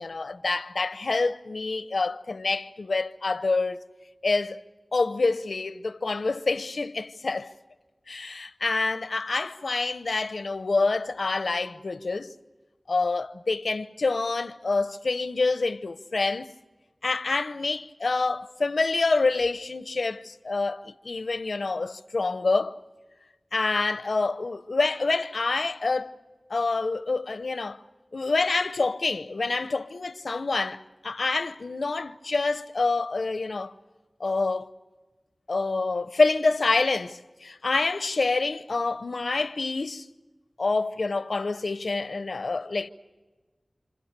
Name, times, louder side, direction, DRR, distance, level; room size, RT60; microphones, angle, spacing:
voice 1, 0.0-3.8 4.2-4.6 4.9-7.5 8.1-12.3 12.9-16.5 17.0-22.7 23.5-26.1 26.5-27.8 28.1-33.7 34.2-34.7 35.5-40.1 40.6-42.9, left 3 dB, 85° left, 0.7 m, -27 dB
29.5 x 26.0 x 6.7 m
wide cardioid pair, 45°, 0 cm